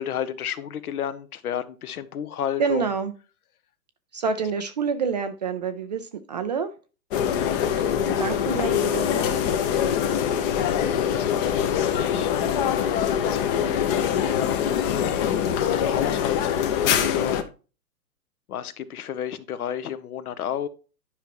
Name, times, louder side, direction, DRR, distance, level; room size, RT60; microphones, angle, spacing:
voice 1, 0.0-2.8 7.3-7.5 10.1-12.6 12.9-17.5 18.5-20.7, left 9 dB, 60° left, 1.0 m, -32 dB
voice 2, 2.6-3.1 4.1-6.7 7.8-9.6, right 5 dB, 30° right, 0.4 m, -28 dB
sound 1, 7.1-17.4, left 9 dB, 35° left, 0.9 m, -24 dB
10.0 x 5.7 x 2.9 m
hypercardioid pair, 120°, 49 cm